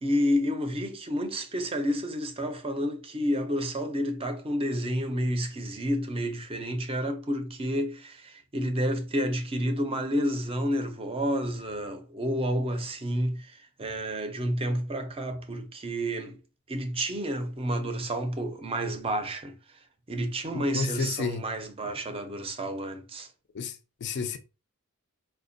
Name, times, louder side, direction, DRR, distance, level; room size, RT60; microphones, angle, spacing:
voice 1, 0.0-16.4 16.7-19.8 20.1-23.3, equal, 25° right, 0.5 m, -30 dB
voice 2, 20.5-21.4 23.5-24.4, left 4 dB, 50° left, 0.4 m, -31 dB
4.2 x 2.2 x 2.6 m
head